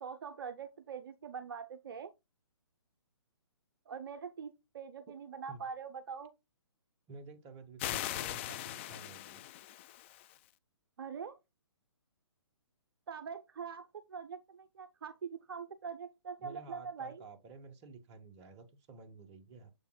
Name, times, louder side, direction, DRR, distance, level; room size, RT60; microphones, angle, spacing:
voice 1, 0.0-2.1 3.9-6.3 11.0-11.4 13.1-17.2, right 6 dB, 50° right, 0.6 m, -43 dB
voice 2, 7.1-9.4 16.4-19.7, right 4 dB, 25° right, 1.0 m, -52 dB
sound 1, 7.8-10.4, left 13 dB, 25° left, 0.4 m, -40 dB
7.2 x 6.7 x 2.2 m
figure-of-eight pair, 135°, 15 cm